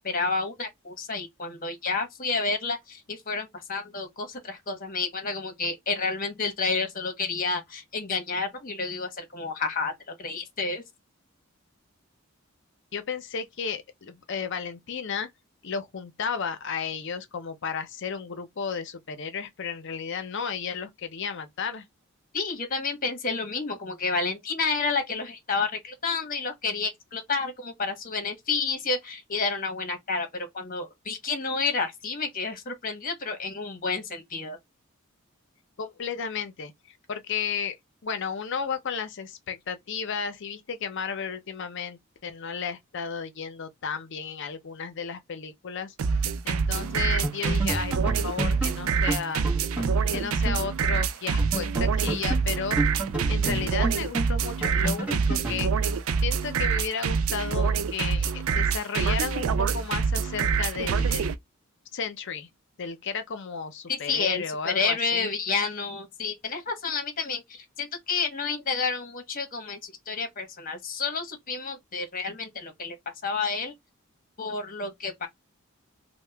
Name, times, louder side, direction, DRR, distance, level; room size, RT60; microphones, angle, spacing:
voice 1, 0.0-9.9 10.2-10.8 22.3-34.6 63.9-67.4 67.8-73.0 73.2-73.7 74.4-75.3, left 4 dB, 40° left, 1.0 m, -30 dB
voice 2, 12.9-15.3 15.6-21.8 35.8-36.7 37.1-37.8 38.0-45.9 46.4-49.4 50.1-52.8 53.3-55.7 56.2-61.3 61.9-62.5 62.8-65.3, left 6 dB, 55° left, 0.6 m, -33 dB
sound 1, 46.0-61.3, right 5 dB, 70° right, 0.4 m, -26 dB
sound 2, 46.8-47.0 47.2-50.7 50.9-51.0 51.4-55.7, right 2 dB, 5° right, 1.0 m, -31 dB
2.8 x 2.1 x 3.4 m
head